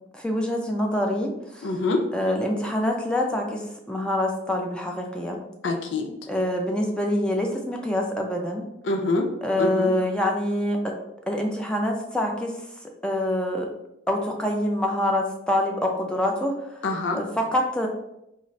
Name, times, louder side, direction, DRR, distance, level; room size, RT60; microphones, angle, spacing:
voice 1, 0.1-1.7 2.1-3.6 3.9-5.4 6.3-8.6 9.4-11.0 11.3-12.5 13.0-13.7 14.1-16.8 17.1-17.9, left 1 dB, 5° left, 1 dB, 0.4 m, -25 dB
voice 2, 1.6-2.1 5.6-6.1 8.8-9.3 9.6-9.9 16.8-17.2, left 2 dB, 90° left, 4 dB, 0.5 m, -25 dB
3.8 x 2.5 x 3.1 m, 0.83 s
head